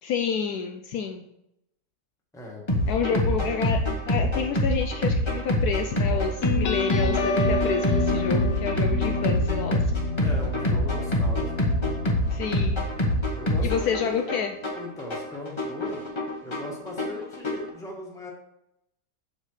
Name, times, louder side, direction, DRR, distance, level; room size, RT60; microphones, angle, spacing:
voice 1, 0.0-1.2 2.9-9.8 12.3-12.8 13.6-14.6, left 6 dB, 75° left, 4 dB, 1.0 m, -29 dB
sound 1, 2.7-17.7, left 1 dB, 20° left, 0.9 m, -26 dB
voice 2, 3.1-3.5 10.2-11.7 13.3-14.1 14.8-16.0 16.4-18.3, left 2 dB, ahead, -2 dB, 1.4 m, -38 dB
sound 2, 6.4-13.6, left 3 dB, 55° left, 0.7 m, -30 dB
7.3 x 6.7 x 3.2 m, 0.83 s
omnidirectional pair, 1.8 m